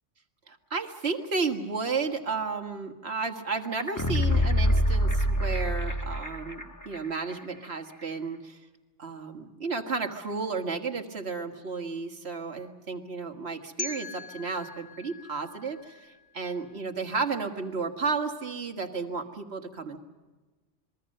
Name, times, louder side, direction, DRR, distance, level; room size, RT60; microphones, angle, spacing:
voice 1, 0.5-8.6 9.0-20.0, right 4 dB, 65° right, 5 dB, 1.9 m, -33 dB
sound 1, 3.7-6.6 6.9-7.0, equal, 15° left, 1.2 m, -25 dB
sound 2, 13.8-16.7, left 3 dB, 80° left, 1.3 m, -42 dB
27.0 x 22.0 x 6.6 m, 1.2 s
omnidirectional pair, 1.2 m